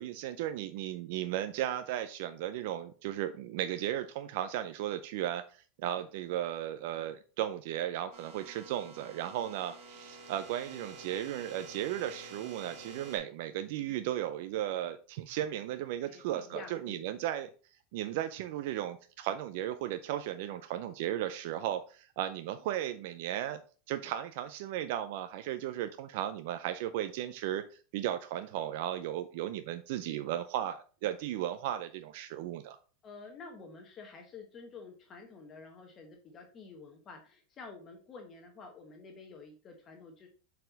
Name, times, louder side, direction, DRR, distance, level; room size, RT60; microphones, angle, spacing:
voice 1, 0.0-17.5 17.9-23.6 23.9-32.8, right 12 dB, 60° right, 9 dB, 0.5 m, -35 dB
sound 1, 8.1-13.2, right 3 dB, 45° right, 1.9 m, -49 dB
voice 2, 16.0-17.1 33.0-40.3, left 4 dB, 25° left, 3 dB, 1.0 m, -49 dB
6.6 x 4.2 x 4.0 m, 0.38 s
supercardioid pair, 160°, 0 cm